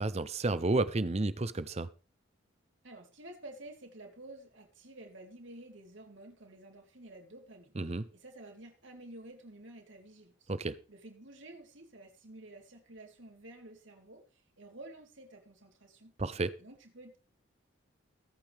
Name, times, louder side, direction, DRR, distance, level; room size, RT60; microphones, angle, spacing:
voice 1, 0.0-1.9 7.8-8.0 10.5-10.8 16.2-16.5, right 2 dB, 30° right, 0.6 m, -31 dB
voice 2, 2.8-10.5 10.9-16.1 16.6-17.2, right 1 dB, 65° right, 3.4 m, -51 dB
21.5 x 9.1 x 3.4 m
head